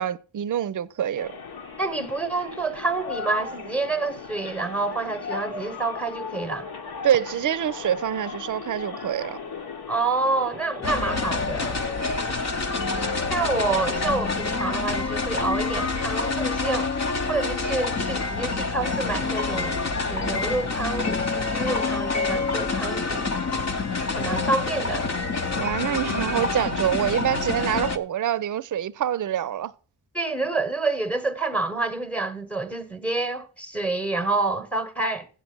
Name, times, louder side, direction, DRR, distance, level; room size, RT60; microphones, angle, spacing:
voice 1, 0.0-1.3 7.0-9.4 25.5-29.7, right 10 dB, 50° right, 0.6 m, -26 dB
sound 1, 1.2-14.0, left 5 dB, 70° left, 1.4 m, -37 dB
voice 2, 1.8-6.7 9.9-11.9 13.3-16.9 17.3-23.3 24.1-25.1 30.1-35.3, right 3 dB, 5° left, 1.1 m, -28 dB
sound 2, 10.8-28.0, left 3 dB, 45° left, 0.9 m, -27 dB
7.8 x 7.7 x 6.0 m
cardioid pair, 95°, 39 cm